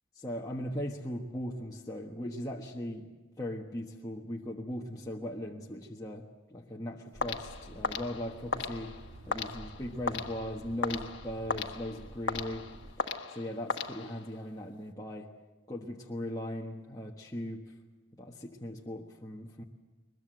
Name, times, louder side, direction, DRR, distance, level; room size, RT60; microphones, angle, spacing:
voice 1, 0.2-9.0 9.2-12.7 13.0-15.3 15.7-17.8 18.2-19.6, left 1 dB, 20° left, -1 dB, 1.3 m, -39 dB
sound 1, 7.1-12.9, right 1 dB, 85° right, 1.6 m, -50 dB
sound 2, 7.2-14.5, left 4 dB, 60° left, 1.4 m, -37 dB
22.5 x 21.5 x 7.8 m, 1.2 s
head